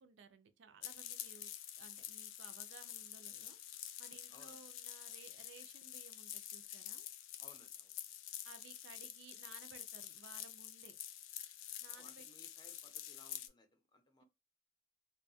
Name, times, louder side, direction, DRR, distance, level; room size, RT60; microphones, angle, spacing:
voice 1, 0.0-1.5 1.8-7.1 8.4-10.9 11.8-12.2, right 5 dB, 65° right, 0.4 m, -59 dB
sound 1, 0.8-13.5, left 11 dB, 80° left, 0.4 m, -48 dB
voice 2, 4.3-4.6 7.4-8.0 11.8-14.2, left 2 dB, 20° left, 0.6 m, -64 dB
2.7 x 2.2 x 2.7 m
head